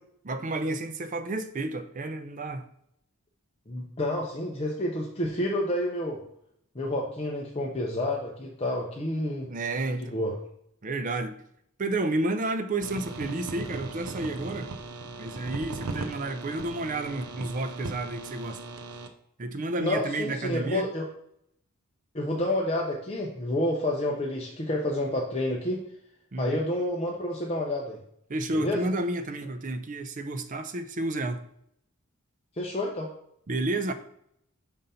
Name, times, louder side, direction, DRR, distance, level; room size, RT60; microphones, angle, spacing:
voice 1, 0.2-2.7 9.5-10.2 10.8-11.4 11.8-14.7 15.2-18.6 19.4-20.8 26.3-26.6 28.3-31.4 33.5-33.9, right 2 dB, 35° right, 0.5 m, -31 dB
voice 2, 3.7-6.2 6.7-9.5 10.0-10.3 19.8-21.1 22.1-25.8 26.4-28.0 28.5-28.9 32.6-33.1, left 1 dB, 30° left, 0.7 m, -29 dB
sound 1, 12.8-19.1, right 3 dB, 75° right, 0.6 m, -38 dB
5.3 x 3.9 x 5.5 m
head